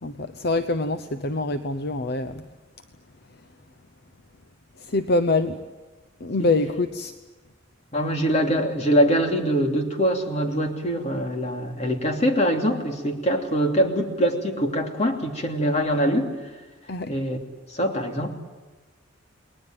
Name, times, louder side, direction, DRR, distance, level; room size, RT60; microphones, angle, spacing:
voice 1, 0.0-2.5 4.8-5.6 6.2-7.1 16.9-17.1, left 2 dB, 55° left, 11 dB, 0.9 m, -25 dB
voice 2, 7.9-16.3 17.1-17.4 17.7-18.3, equal, 35° left, 3 dB, 3.0 m, -23 dB
29.5 x 20.5 x 9.1 m, 1.3 s
head